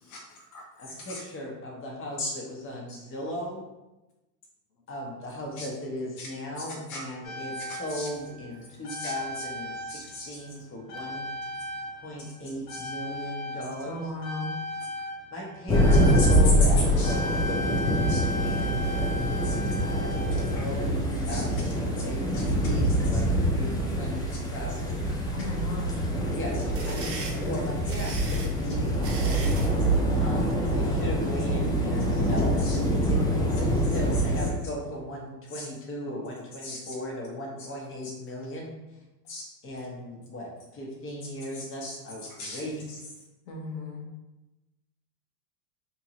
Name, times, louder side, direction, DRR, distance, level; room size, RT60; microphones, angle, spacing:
voice 1, 0.0-1.2 2.2-2.3 2.9-3.0 5.6-5.7 6.2-6.3 6.9-7.0 7.6-8.1 9.0-9.1 9.9-10.3 12.7-12.8 16.2-16.3 17.0-17.2 18.1-18.2 19.4-19.5 21.3-21.4 22.3-22.4 23.1-23.2 32.6-32.8 35.5-35.6 36.6-36.9 39.3-39.4 41.6-41.9 42.4-42.6, left 2 dB, 45° left, -2 dB, 0.7 m, -38 dB
voice 2, 0.8-3.6 4.9-11.3 12.0-14.0 15.3-17.4 18.4-19.0 19.8-25.0 26.3-26.6 26.8-29.3 30.1-38.8 39.6-43.0, equal, 25° left, -1 dB, 1.1 m, -37 dB
sound 1, 7.2-10.5 10.9-21.0 21.9-22.0, left 1 dB, 60° left, 1.2 m, -35 dB
voice 3, 13.9-14.5 25.3-26.1 43.4-44.0, left 2 dB, 80° left, -1 dB, 1.1 m, -36 dB
sound 2, 15.7-34.5, equal, 10° left, 0.5 m, -25 dB
sound 3, 26.7-29.8, right 3 dB, 30° right, 0.9 m, -39 dB
3.6 x 2.9 x 2.9 m, 1.0 s
hypercardioid pair, 95°, 48 cm